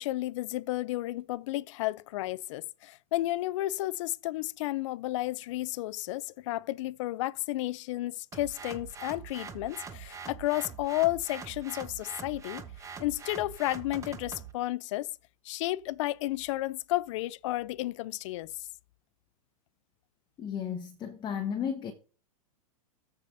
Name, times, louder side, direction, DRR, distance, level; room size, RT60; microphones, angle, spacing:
voice 1, 0.0-12.6 13.0-15.1 15.4-18.7, left 17 dB, 55° left, 0.5 m, -32 dB
sound 1, 8.3-14.5, right 6 dB, 15° right, 1.1 m, -43 dB
voice 2, 20.4-21.9, left 8 dB, 25° left, 1.1 m, -34 dB
14.0 x 5.0 x 2.6 m
hypercardioid pair, 120°, 19 cm